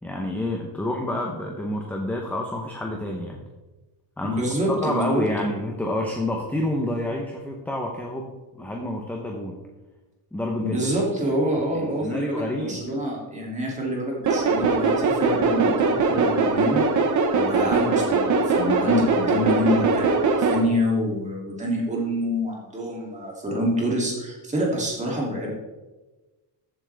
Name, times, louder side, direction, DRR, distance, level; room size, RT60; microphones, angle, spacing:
voice 1, 0.0-3.4 4.2-4.4 4.7-9.6 10.3-10.9 11.7-12.8 17.3-17.6, left 1 dB, 5° left, 0 dB, 0.9 m, -29 dB
voice 2, 4.2-5.2 10.6-17.1 17.5-25.5, equal, 15° right, -3 dB, 2.8 m, -26 dB
sound 1, 14.2-20.6, right 4 dB, 45° right, 1.3 m, -21 dB
14.0 x 7.7 x 3.5 m, 1.2 s
cardioid pair, 170°, 43 cm